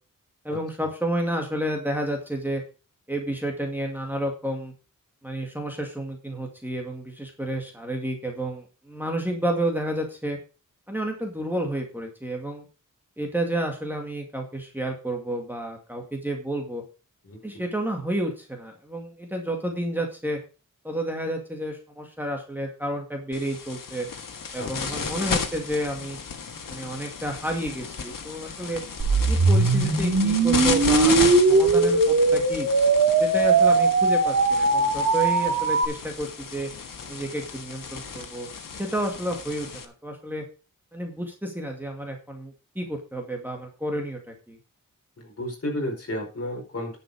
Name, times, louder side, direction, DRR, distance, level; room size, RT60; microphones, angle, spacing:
voice 1, 0.4-2.6 3.1-4.7 5.2-10.4 10.9-12.7 13.2-16.8 17.4-20.4 20.8-24.1 24.5-26.2 26.7-28.8 29.3-32.7 33.2-36.7 37.1-38.5 38.8-40.4 40.9-44.6, right 1 dB, 5° right, 1 dB, 2.1 m, -30 dB
sound 1, 23.3-39.8, left 5 dB, 85° left, 1.6 m, -33 dB
voice 2, 24.6-25.1 45.2-47.0, left 1 dB, 45° left, 1 dB, 4.7 m, -32 dB
sound 2, 29.0-35.8, right 3 dB, 55° right, 2.6 m, -20 dB
10.5 x 7.7 x 4.7 m, 0.33 s
wide cardioid pair, 135°, 32 cm